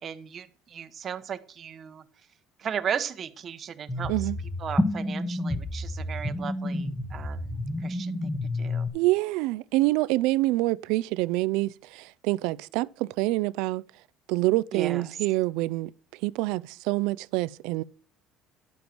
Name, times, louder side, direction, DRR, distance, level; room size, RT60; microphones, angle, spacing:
voice 1, 0.0-2.0 2.6-4.3 4.6-8.9 14.7-15.2, right 8 dB, 40° right, 0.9 m, -36 dB
sound 1, 3.9-8.9, left 1 dB, 10° left, 1.2 m, -30 dB
voice 2, 8.9-13.8 14.3-15.9 16.2-17.8, right 19 dB, 80° right, 0.4 m, -26 dB
10.5 x 7.2 x 4.5 m
cardioid pair, 125°, 0 cm